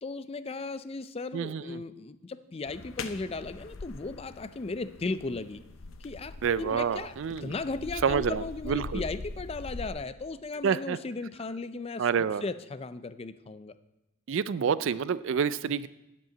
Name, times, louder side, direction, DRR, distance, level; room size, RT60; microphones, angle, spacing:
voice 1, 0.0-5.6 6.0-7.1 7.4-12.1 12.4-13.7, left 3 dB, 25° left, 13 dB, 0.4 m, -36 dB
voice 2, 1.3-1.8 6.4-7.5 8.0-9.0 10.6-11.0 12.0-12.4 14.3-15.9, right 6 dB, 60° right, 17 dB, 0.4 m, -28 dB
sound 1, 2.7-9.9, left 3 dB, 65° left, 0.8 m, -42 dB
9.3 x 7.7 x 8.4 m, 0.96 s
head